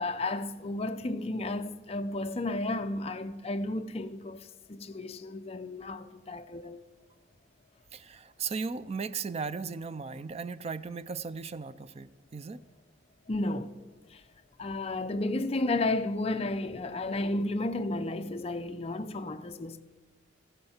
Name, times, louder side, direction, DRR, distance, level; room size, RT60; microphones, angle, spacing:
voice 1, 0.0-6.8 13.3-13.7 14.1-14.2 14.6-19.8, left 2 dB, 30° left, 0.5 m, -33 dB
voice 2, 7.9-12.6, right 5 dB, 35° right, 0.4 m, -36 dB
15.0 x 12.0 x 4.3 m
head